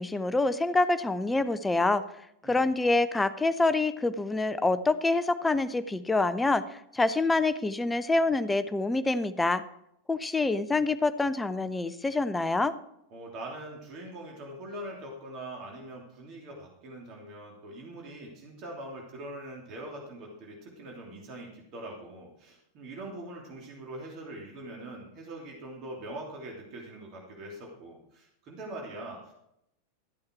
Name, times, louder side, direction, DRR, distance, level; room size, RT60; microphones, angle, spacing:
voice 1, 0.0-2.0 2.4-6.6 6.9-9.6 10.1-12.7, left 2 dB, 10° left, 13 dB, 0.6 m, -26 dB
voice 2, 13.1-29.3, right 1 dB, 40° right, -1 dB, 3.0 m, -42 dB
13.5 x 8.6 x 4.6 m, 0.78 s
figure-of-eight pair, 90°, 0 cm